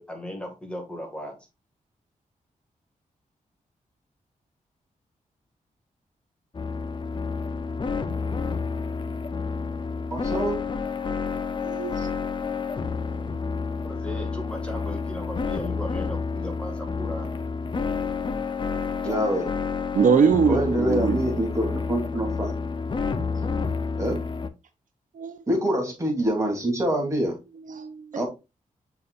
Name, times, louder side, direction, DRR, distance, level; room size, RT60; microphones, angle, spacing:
voice 1, 0.0-1.4 13.8-17.3, equal, 5° left, 2.0 m, -37 dB
sound 1, 6.5-24.5, left 5 dB, 35° left, 0.7 m, -29 dB
voice 2, 10.1-10.6 19.0-19.5 20.5-22.5 24.0-24.2 25.5-27.3 28.1-28.3, right 1 dB, 20° right, 3.0 m, -25 dB
voice 3, 11.6-12.1 19.9-21.2 25.2-25.4 27.7-28.1, right 6 dB, 70° right, 0.7 m, -22 dB
6.9 x 5.6 x 2.5 m
wide cardioid pair, 105°, 14 cm